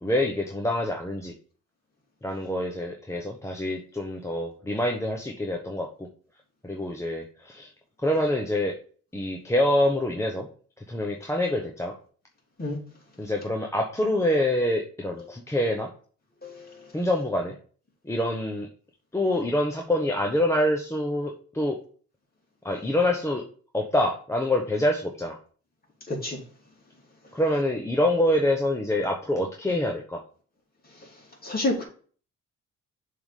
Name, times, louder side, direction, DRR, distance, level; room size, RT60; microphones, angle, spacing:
voice 1, 0.0-1.3 2.2-6.1 6.6-7.7 8.0-8.8 9.1-10.5 10.9-11.9 13.2-15.9 16.9-17.5 18.0-18.7 19.1-21.8 22.6-23.4 23.7-25.4 27.3-30.2, left 1 dB, 10° left, 0.9 m, -26 dB
voice 2, 26.1-26.4 31.4-31.8, left 2 dB, 30° left, 2.9 m, -28 dB
6.9 x 3.8 x 5.0 m
cardioid pair, 90°, 30 cm